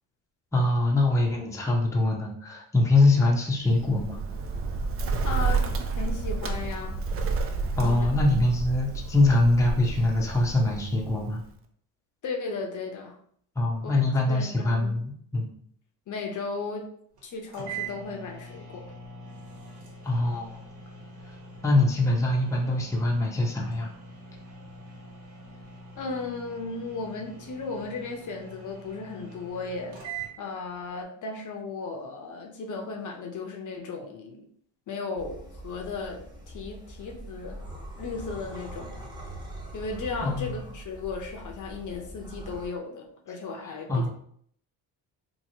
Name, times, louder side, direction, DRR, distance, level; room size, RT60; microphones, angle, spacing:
voice 1, 0.5-4.2 7.7-11.4 13.6-15.5 20.0-20.6 21.6-23.9 40.2-40.5 43.9-44.1, left 2 dB, 5° left, -1 dB, 0.6 m, -23 dB
Bird, 3.7-11.5, right 4 dB, 35° right, 0.4 m, -30 dB
voice 2, 5.2-5.7 6.0-7.0 7.8-8.1 12.2-13.2 13.8-14.0 14.3-15.0 16.1-16.9 17.2-18.9 26.0-34.5 34.9-37.6 38.0-38.9 39.7-44.1, left 4 dB, 45° left, 2 dB, 0.6 m, -35 dB
sound 1, 17.2-17.3 17.5-30.3, right 4 dB, 70° right, 1.3 m, -43 dB
sound 2, 35.2-42.7, right 1 dB, 10° right, 1.0 m, -42 dB
2.8 x 2.6 x 2.7 m, 0.63 s
supercardioid pair, 85°, 43 cm